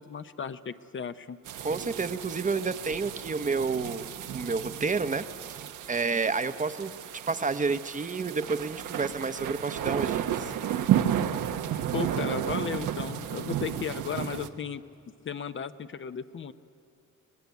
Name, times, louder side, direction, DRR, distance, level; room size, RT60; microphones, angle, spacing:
voice 1, 0.0-1.4 11.9-14.8 15.2-16.5, left 7 dB, 40° left, 11 dB, 0.8 m, -35 dB
sound 1, 1.5-14.5, right 10 dB, 80° right, 1.2 m, -32 dB
voice 2, 1.6-5.6 5.9-6.9 7.3-10.5, right 4 dB, 25° right, 11 dB, 0.9 m, -30 dB
24.0 x 19.0 x 9.4 m, 2.7 s
cardioid pair, 90°, 30 cm